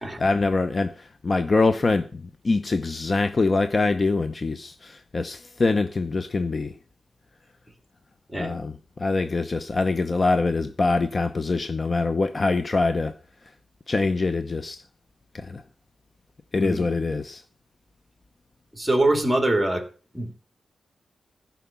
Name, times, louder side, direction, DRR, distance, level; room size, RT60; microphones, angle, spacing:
voice 1, 0.2-6.7 8.3-13.1 13.9-14.8 15.3-15.6 16.5-17.4, left 3 dB, 30° left, 0.7 m, -24 dB
voice 2, 18.7-19.9 20.1-20.3, right 1 dB, 5° right, 2.5 m, -23 dB
15.0 x 5.8 x 7.1 m
wide cardioid pair, 140°, 0 cm